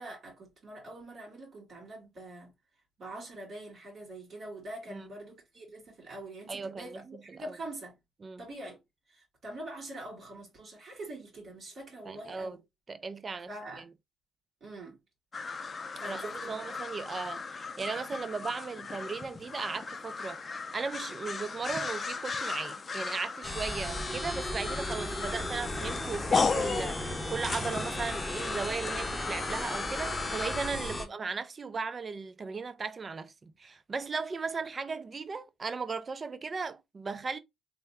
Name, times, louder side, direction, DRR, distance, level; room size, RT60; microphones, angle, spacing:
voice 1, 0.0-2.5 3.0-8.0 8.4-8.8 9.1-12.6 13.5-13.8 14.6-15.0 15.9-16.6 17.0-17.1 30.8-31.1, right 1 dB, 55° right, 2.3 m, -44 dB
voice 2, 6.5-7.6 8.2-8.4 12.0-12.6 12.9-13.9 16.0-37.4, right 4 dB, 35° right, 0.4 m, -37 dB
sound 1, 15.3-30.7, left 4 dB, 35° left, 0.5 m, -36 dB
sound 2, 23.4-31.1, left 1 dB, 10° left, 0.9 m, -36 dB
3.5 x 2.1 x 3.4 m
cardioid pair, 90°, 0 cm